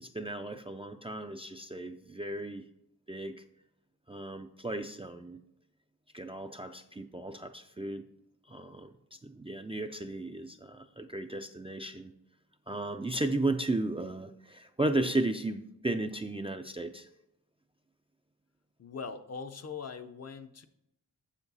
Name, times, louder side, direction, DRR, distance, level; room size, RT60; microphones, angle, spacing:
voice 1, 0.0-2.7 3.1-3.4 4.1-5.4 6.1-8.1 8.5-12.1 12.7-17.1, right 2 dB, 15° right, 6 dB, 0.3 m, -35 dB
voice 2, 18.8-20.7, left 5 dB, 45° left, 9 dB, 0.6 m, -41 dB
7.3 x 7.2 x 4.0 m, 0.82 s
wide cardioid pair, 125°, 37 cm